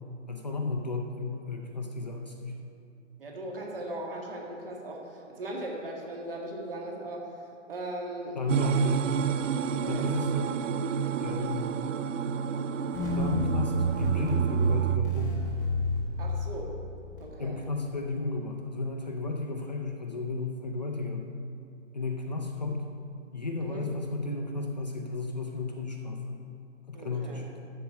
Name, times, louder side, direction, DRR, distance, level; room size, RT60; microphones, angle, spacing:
voice 1, 0.3-2.6 8.3-9.0 9.8-10.6 11.2-11.7 13.1-15.4 17.4-21.3 21.9-22.8 23.3-26.4 26.9-27.6, left 3 dB, 35° left, 1 dB, 0.6 m, -33 dB
voice 2, 3.2-7.3 7.7-8.8 9.7-10.1 16.2-16.8 17.2-17.6 23.6-23.9 26.9-27.5, right 1 dB, 45° right, -1 dB, 1.9 m, -38 dB
sound 1, 8.5-15.0, right 7 dB, 75° right, 0.5 m, -30 dB
sound 2, 12.9-17.2, right 3 dB, 15° left, 0.9 m, -28 dB
13.0 x 4.6 x 7.0 m, 2.5 s
hypercardioid pair, 180°, 38 cm